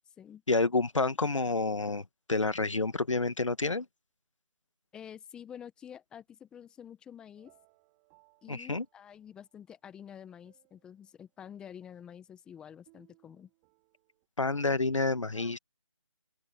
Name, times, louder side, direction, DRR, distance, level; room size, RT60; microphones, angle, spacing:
voice 1, 0.5-3.9 8.5-8.8 14.4-15.6, left 3 dB, 75° left, 1.6 m, -29 dB
voice 2, 4.9-7.5 8.4-13.5 15.3-15.6, left 9 dB, 5° left, 1.2 m, -49 dB
sound 1, 7.4-9.5 10.0-11.1 12.9-14.3, right 32 dB, 15° right, 5.8 m, -68 dB
open air
figure-of-eight pair, 160°, 16 cm